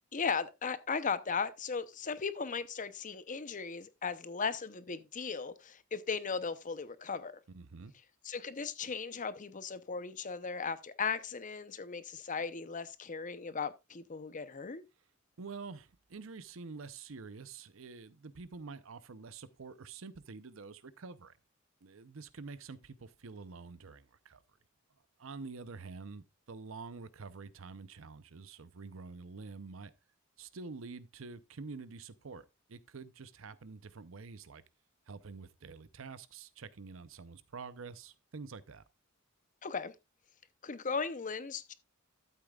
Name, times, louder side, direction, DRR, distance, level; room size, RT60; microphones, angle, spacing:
voice 1, 0.1-7.3 8.2-14.8 39.6-39.9 40.6-41.7, left 5 dB, 40° left, 0.7 m, -37 dB
voice 2, 7.5-7.9 15.4-21.4 21.8-24.4 25.2-29.9 30.4-34.6 35.1-38.8, right 4 dB, 70° right, 0.7 m, -47 dB
12.5 x 8.3 x 2.4 m
head